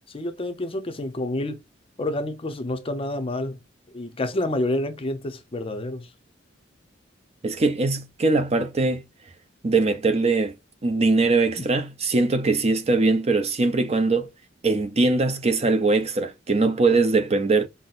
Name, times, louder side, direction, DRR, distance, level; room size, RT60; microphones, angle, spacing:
voice 1, 0.1-1.6 2.0-3.6 3.9-6.1 11.6-11.7 16.6-17.0, left 1 dB, 30° left, 0.6 m, -29 dB
voice 2, 7.4-9.0 9.6-10.5 10.8-14.3 14.6-17.7, right 3 dB, 35° right, 0.6 m, -21 dB
5.6 x 2.1 x 2.4 m
head